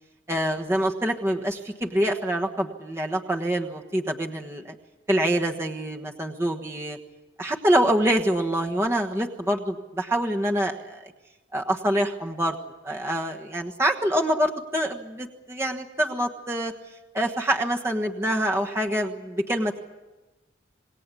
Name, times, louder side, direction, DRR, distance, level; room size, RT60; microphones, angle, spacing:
voice 1, 0.3-4.7 5.1-7.0 7.4-11.1 11.5-12.6 12.8-16.7 17.1-19.8, right 1 dB, 15° right, 1 dB, 1.3 m, -25 dB
27.5 x 19.5 x 8.4 m, 1.1 s
head